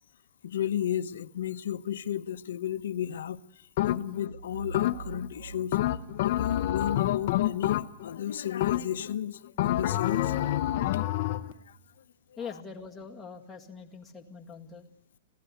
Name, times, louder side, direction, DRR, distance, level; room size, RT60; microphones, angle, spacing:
voice 1, 0.4-3.4 3.9-5.8 6.2-10.7 11.7-11.8, left 10 dB, 90° left, 1.0 m, -33 dB
sound 1, 3.8-4.3 4.7-5.3 5.7-8.2 8.6-9.1 9.6-11.5, left 14 dB, 45° left, 0.9 m, -27 dB
sound 2, 4.3-7.1, right 3 dB, 70° right, 5.5 m, -44 dB
voice 2, 12.4-14.9, left 5 dB, 5° left, 1.9 m, -43 dB
27.5 x 16.5 x 8.0 m
supercardioid pair, 170°, 0 cm